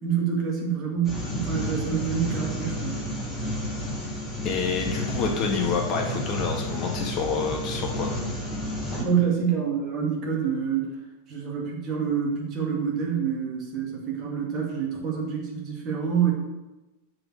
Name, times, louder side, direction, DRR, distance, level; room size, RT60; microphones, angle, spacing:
voice 1, 0.0-3.0 8.9-10.9 11.3-16.3, right 7 dB, 35° right, -2 dB, 2.2 m, -27 dB
sound 1, 1.0-9.0, left 1 dB, 10° left, 2.2 m, -31 dB
voice 2, 4.4-8.1, left 5 dB, 35° left, 1 dB, 1.6 m, -28 dB
6.2 x 4.8 x 6.4 m, 1.1 s
figure-of-eight pair, 90°, 0 cm